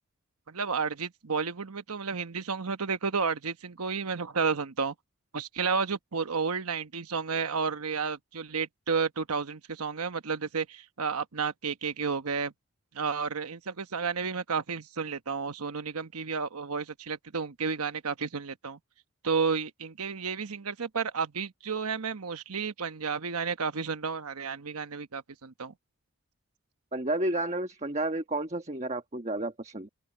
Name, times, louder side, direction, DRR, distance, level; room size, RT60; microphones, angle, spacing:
voice 1, 0.5-4.9 5.3-12.5 12.9-18.8 19.2-25.7, right 5 dB, 85° right, 1.1 m, -32 dB
voice 2, 26.9-29.9, right 1 dB, 30° right, 1.3 m, -31 dB
open air
head